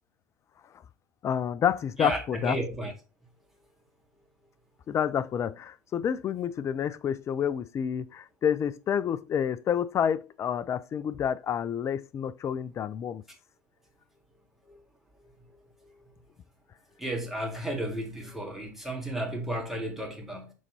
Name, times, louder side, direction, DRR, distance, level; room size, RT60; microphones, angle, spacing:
voice 1, 1.2-2.6 4.9-13.2, left 8 dB, 30° left, 0.4 m, -29 dB
voice 2, 2.0-2.9 17.0-20.5, right 1 dB, 5° right, 2.0 m, -33 dB
6.3 x 4.0 x 4.1 m
figure-of-eight pair, 80°, 10 cm